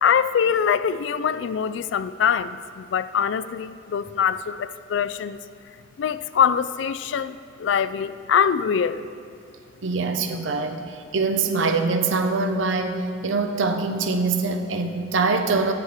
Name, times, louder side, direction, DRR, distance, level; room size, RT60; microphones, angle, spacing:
voice 1, 0.0-5.4 6.0-9.0, left 7 dB, 70° left, 14 dB, 0.3 m, -23 dB
voice 2, 9.8-15.7, right 3 dB, 80° right, 7 dB, 0.7 m, -24 dB
9.8 x 7.4 x 4.8 m, 2.3 s
head